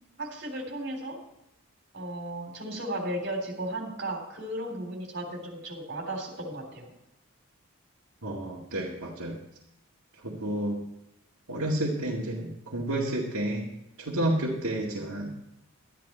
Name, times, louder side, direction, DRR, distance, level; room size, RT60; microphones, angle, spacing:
voice 1, 0.2-1.2 1.9-6.9, right 1 dB, 55° right, 2 dB, 3.5 m, -35 dB
voice 2, 8.2-9.4 10.2-10.8 11.5-13.7 14.0-15.4, right 1 dB, 80° right, -4 dB, 2.0 m, -30 dB
12.5 x 10.5 x 4.4 m, 0.90 s
head